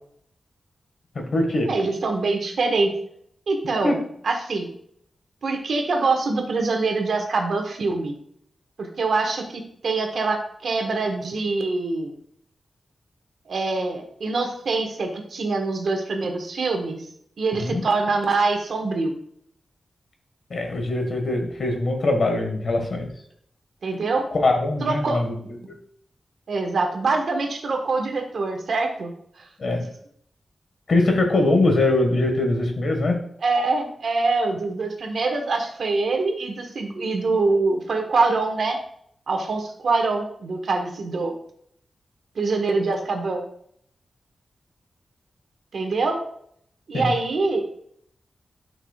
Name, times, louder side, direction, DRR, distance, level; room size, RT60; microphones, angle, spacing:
voice 1, 1.1-1.7 3.8-3.9 17.6-17.8 20.5-23.1 24.3-25.3 29.6-29.8 30.9-33.2 46.9-47.1, left 2 dB, 55° left, 4 dB, 1.7 m, -22 dB
voice 2, 1.7-2.9 3.5-4.7 5.4-8.2 8.8-12.1 13.5-17.0 17.4-19.1 23.8-24.2 24.8-25.2 25.6-25.7 26.5-29.1 33.4-38.8 39.3-41.3 42.3-43.4 45.7-46.2 46.9-47.7, right 3 dB, 75° right, 3 dB, 1.4 m, -24 dB
12.0 x 6.0 x 2.4 m, 0.66 s
wide cardioid pair, 140°, 0 cm